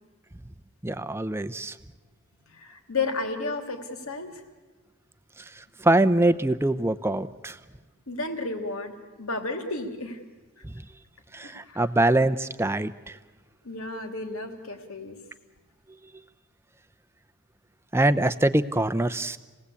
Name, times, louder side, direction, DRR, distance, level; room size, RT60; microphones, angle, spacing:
voice 1, 0.8-1.8 5.6-7.6 10.6-10.8 11.3-13.2 17.9-19.4, right 1 dB, 10° right, 12 dB, 0.7 m, -24 dB
voice 2, 2.5-4.4 8.1-10.2 10.6-10.7 11.4-11.8 13.6-15.2, left 3 dB, 70° left, 5 dB, 2.8 m, -33 dB
29.0 x 18.5 x 8.4 m, 1.3 s
head